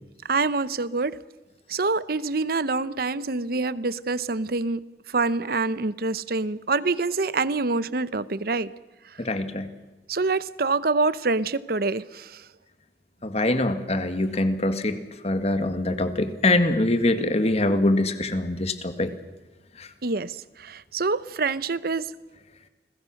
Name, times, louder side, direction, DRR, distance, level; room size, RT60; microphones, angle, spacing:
voice 1, 0.3-1.1 1.7-4.8 5.1-8.7 10.1-12.4 20.0-20.3 20.6-22.1, right 3 dB, 60° right, 17 dB, 0.8 m, -26 dB
voice 2, 9.2-9.7 13.2-15.0 15.2-19.1 19.8-19.9, left 2 dB, 35° left, 9 dB, 1.9 m, -23 dB
30.0 x 21.5 x 6.5 m, 1.1 s
head